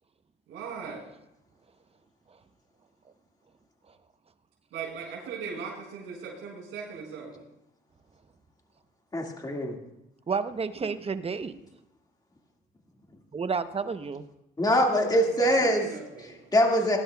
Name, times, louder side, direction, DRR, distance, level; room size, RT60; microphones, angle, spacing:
voice 1, 0.5-1.1 4.7-7.4 15.2-16.5, right 5 dB, 90° right, -5 dB, 4.5 m, -39 dB
voice 2, 9.1-9.8 14.6-15.9 16.5-17.0, equal, 20° left, 1 dB, 1.9 m, -23 dB
voice 3, 10.3-11.5 13.3-14.2, right 5 dB, 30° right, 11 dB, 0.8 m, -30 dB
19.5 x 11.5 x 2.3 m, 0.85 s
cardioid pair, 90°, 20 cm